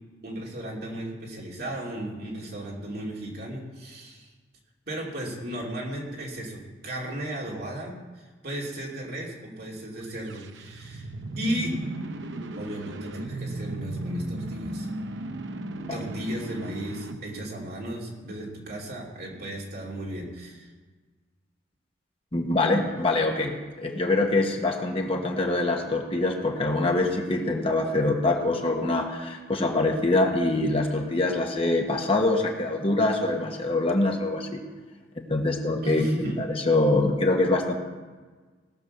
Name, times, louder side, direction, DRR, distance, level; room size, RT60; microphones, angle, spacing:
voice 1, 0.2-4.3 4.9-11.1 11.3-11.8 12.5-14.9 15.9-20.7 35.8-36.4, right 1 dB, 55° right, -3 dB, 3.0 m, -35 dB
sound 1, 10.0-18.1, right 1 dB, 75° right, 0.7 m, -36 dB
voice 2, 22.3-34.6 35.2-36.1 36.4-37.7, left 2 dB, 30° left, 2 dB, 1.3 m, -24 dB
18.0 x 6.4 x 6.7 m, 1.4 s
head